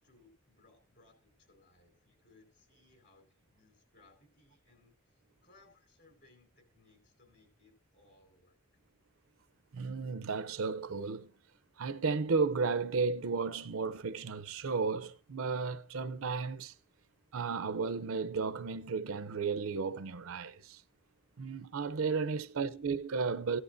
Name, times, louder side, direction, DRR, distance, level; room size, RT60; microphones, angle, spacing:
voice 1, 0.0-8.6, left 3 dB, 55° left, 4.4 m, -65 dB
voice 2, 9.7-11.3 11.8-16.7 17.3-20.8 21.4-23.6, right 4 dB, 70° right, 0.6 m, -34 dB
15.5 x 11.0 x 2.6 m
head